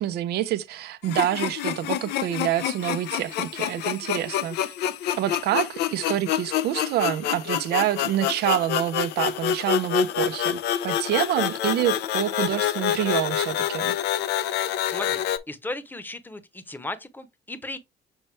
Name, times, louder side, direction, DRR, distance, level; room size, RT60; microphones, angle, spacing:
voice 1, 0.0-4.6 5.2-14.0, right 13 dB, 75° right, 0.8 m, -27 dB
sound 1, 1.0-15.4, left 11 dB, 80° left, 0.7 m, -27 dB
voice 2, 14.8-17.8, left 2 dB, 10° left, 1.0 m, -36 dB
6.8 x 4.3 x 3.3 m
cardioid pair, 110°, 17 cm